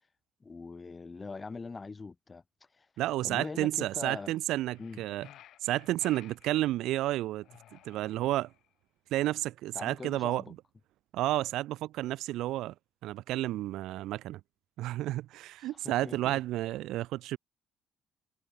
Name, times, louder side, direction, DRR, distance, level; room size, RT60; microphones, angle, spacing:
voice 1, 0.4-2.4 2.7-2.9 3.2-4.3 4.8-5.0 9.7-10.5 15.6-16.4, left 4 dB, 20° left, 5.8 m, -42 dB
voice 2, 3.0-5.3 5.6-7.5 7.7-8.5 9.1-10.4 11.1-12.7 13.0-14.4 14.8-17.4, right 15 dB, 80° right, 2.3 m, -31 dB
sound 1, 4.6-6.8 7.4-8.7, left 12 dB, 70° left, 6.9 m, -56 dB
cardioid pair, 130°, 0 cm